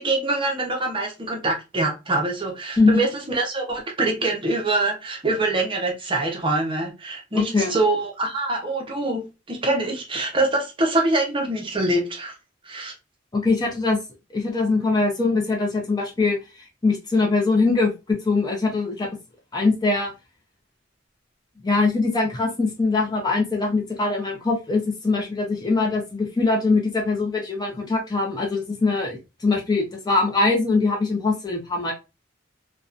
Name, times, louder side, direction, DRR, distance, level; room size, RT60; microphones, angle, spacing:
voice 1, 0.0-12.3 12.7-12.9, right 2 dB, 25° right, 1 dB, 0.6 m, -24 dB
voice 2, 2.8-3.1 7.3-7.7 13.3-14.0 14.3-16.4 16.8-19.1 19.5-20.1 21.6-31.9, left 3 dB, 20° left, 0 dB, 0.5 m, -22 dB
2.6 x 2.1 x 2.4 m, 0.26 s
head